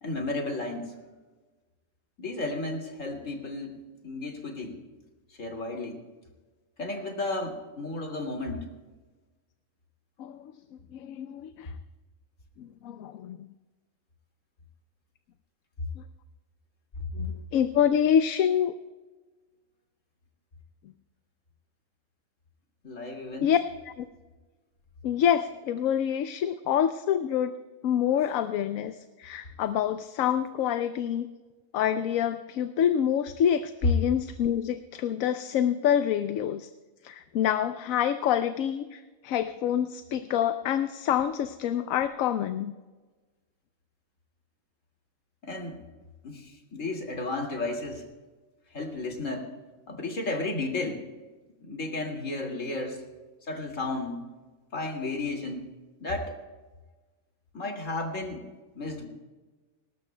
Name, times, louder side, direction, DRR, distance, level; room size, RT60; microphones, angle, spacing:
voice 1, 0.0-0.9 2.2-4.8 5.3-6.0 6.8-8.7 22.8-23.5 45.4-45.8 46.2-48.1 48.7-49.5 49.9-51.0 51.6-53.0 53.4-54.3 54.7-55.7 56.0-56.3 57.5-58.5 58.7-59.1, left 2 dB, 70° left, 1 dB, 2.6 m, -33 dB
voice 2, 10.9-11.7 12.6-13.5 16.0-16.1 17.2-18.7 23.4-23.6 24.0-24.1 25.0-27.5 27.8-31.3 31.7-36.7 37.0-42.7, left 9 dB, 85° left, 10 dB, 1.0 m, -27 dB
19.5 x 19.0 x 2.2 m, 1.3 s
omnidirectional pair, 1.4 m